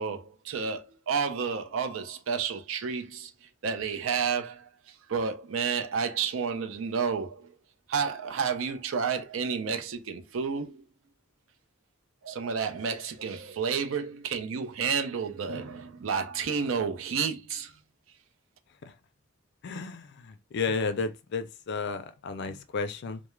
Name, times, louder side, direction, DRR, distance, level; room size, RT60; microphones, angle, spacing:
voice 1, 0.0-7.5 7.9-10.8 12.2-17.7, right 6 dB, 80° right, 0.5 m, -31 dB
voice 2, 19.6-23.2, left 4 dB, 60° left, 0.4 m, -32 dB
2.3 x 2.0 x 3.1 m
head